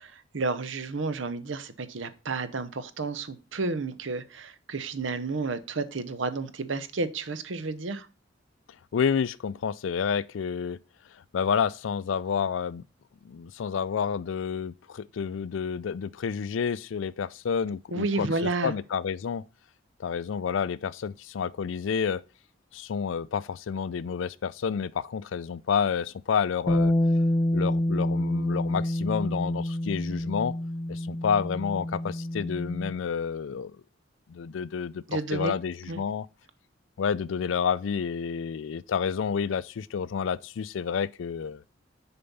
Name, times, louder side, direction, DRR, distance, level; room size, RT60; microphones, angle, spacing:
voice 1, 0.0-8.1 17.9-18.7 35.1-35.5 35.9-36.0, right 3 dB, 75° right, 0.8 m, -31 dB
voice 2, 8.9-10.8 11.3-12.8 13.2-19.4 20.0-22.2 22.7-26.9 27.5-30.5 30.9-33.7 34.3-36.3 37.0-41.6, left 6 dB, 75° left, 0.4 m, -29 dB
Bass guitar, 26.7-32.9, left 1 dB, 20° left, 0.8 m, -27 dB
6.9 x 4.4 x 5.4 m
head